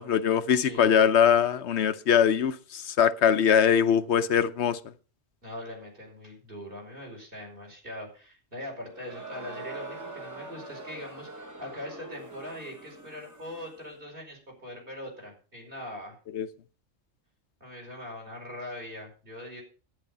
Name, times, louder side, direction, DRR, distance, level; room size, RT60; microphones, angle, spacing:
voice 1, 0.0-4.8 16.3-16.5, left 8 dB, 65° left, 1.0 m, -22 dB
voice 2, 0.5-0.9 5.4-16.2 17.6-19.6, left 1 dB, 45° right, 5.3 m, -41 dB
Crowd, 8.9-13.9, right 2 dB, 15° right, 1.2 m, -43 dB
11.0 x 9.8 x 5.3 m
omnidirectional pair, 1.3 m